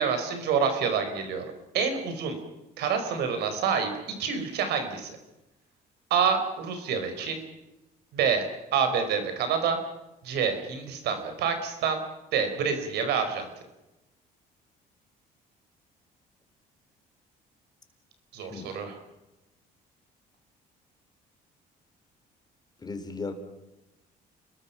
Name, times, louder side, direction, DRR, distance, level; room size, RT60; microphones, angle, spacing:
voice 1, 0.0-1.5 1.7-2.4 2.8-3.9 4.2-5.2 6.1-7.4 8.1-9.8 10.2-12.0 12.3-13.5 18.3-19.0, right 6 dB, 80° right, 7 dB, 4.6 m, -27 dB
voice 2, 18.4-18.8 22.8-23.3, left 4 dB, 25° left, 6 dB, 3.9 m, -36 dB
30.0 x 21.5 x 5.8 m, 0.97 s
cardioid pair, 110°, 17 cm